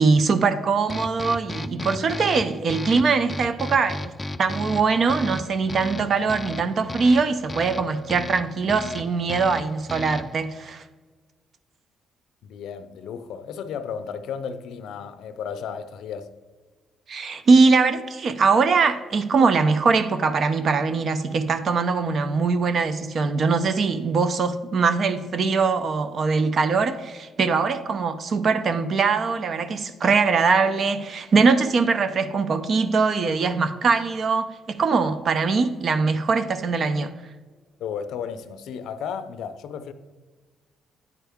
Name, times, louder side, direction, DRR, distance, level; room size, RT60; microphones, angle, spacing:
voice 1, 0.0-4.1 4.4-10.8 17.1-37.1, right 4 dB, 50° right, 0.6 m, -22 dB
sound 1, 0.9-10.4, left 2 dB, 20° left, 0.3 m, -35 dB
voice 2, 12.4-16.3 37.8-39.9, left 7 dB, 80° left, 0.5 m, -34 dB
9.6 x 4.5 x 3.5 m
cardioid pair, 90°, 0 cm